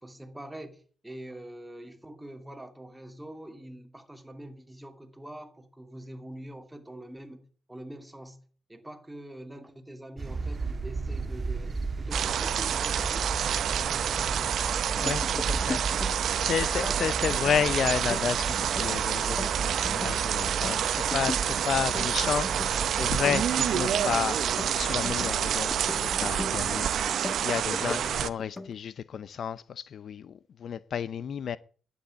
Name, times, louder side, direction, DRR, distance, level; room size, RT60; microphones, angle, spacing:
voice 1, 0.0-8.4 8.7-14.8 27.8-28.2, right 1 dB, 10° right, 2.4 m, -44 dB
sound 1, 10.2-27.1, right 4 dB, 35° right, 1.5 m, -36 dB
sound 2, 12.1-28.3, right 9 dB, 70° right, 0.9 m, -28 dB
sound 3, 14.9-16.4 16.7-17.7 17.9-20.2 20.5-21.5 21.8-22.8 23.1-25.4 25.7-26.8 27.1-28.1 28.4-28.7, left 2 dB, 25° left, 1.2 m, -38 dB
voice 2, 15.0-16.0 16.4-24.4 24.7-26.9 27.4-31.6, left 8 dB, 60° left, 0.6 m, -31 dB
11.5 x 8.2 x 9.3 m
cardioid pair, 100°, 0 cm